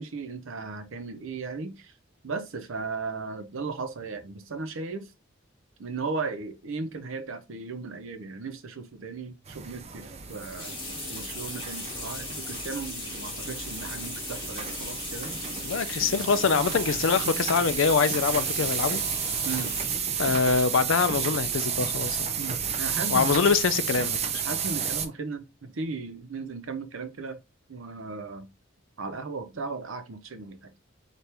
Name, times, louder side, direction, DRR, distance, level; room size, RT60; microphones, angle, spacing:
voice 1, 0.0-1.9 2.2-5.1 5.8-10.8 11.1-15.3 16.2-16.6 19.5-19.8 22.4-23.4 24.4-27.4 27.7-28.5 29.0-30.7, right 4 dB, 75° right, 0.7 m, -36 dB
sound 1, 9.5-25.1, right 7 dB, 30° right, 0.4 m, -32 dB
sound 2, 10.3-20.1, left 2 dB, 25° left, 1.6 m, -37 dB
voice 2, 15.6-19.0 20.2-22.3 23.1-24.2, left 5 dB, 70° left, 0.4 m, -24 dB
4.4 x 2.5 x 3.3 m
head